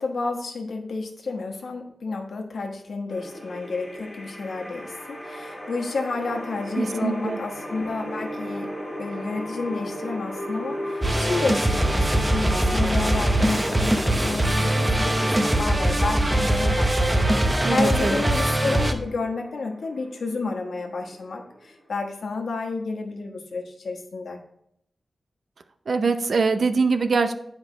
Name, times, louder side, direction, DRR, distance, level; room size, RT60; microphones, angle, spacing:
voice 1, 0.0-8.7 9.0-24.4, left 3 dB, 70° left, 2 dB, 1.3 m, -30 dB
sound 1, 3.1-22.1, equal, ahead, 1.6 m, -36 dB
voice 2, 6.8-7.4 17.6-18.2 25.9-27.3, right 4 dB, 55° right, 9 dB, 0.6 m, -23 dB
sound 2, 11.0-18.9, right 1 dB, 15° right, 0.7 m, -22 dB
9.4 x 5.2 x 4.0 m, 0.73 s
wide cardioid pair, 175°, 0 cm